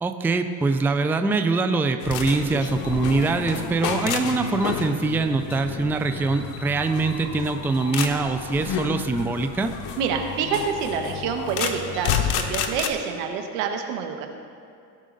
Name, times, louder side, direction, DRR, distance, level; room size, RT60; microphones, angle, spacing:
voice 1, 0.0-9.7, right 3 dB, 5° right, 8 dB, 0.4 m, -23 dB
sound 1, 2.0-12.9, left 7 dB, 80° left, 1.0 m, -30 dB
voice 2, 10.0-14.3, right 7 dB, 90° right, 5 dB, 1.3 m, -27 dB
18.0 x 6.2 x 3.9 m, 2.5 s
cardioid pair, 120°, 39 cm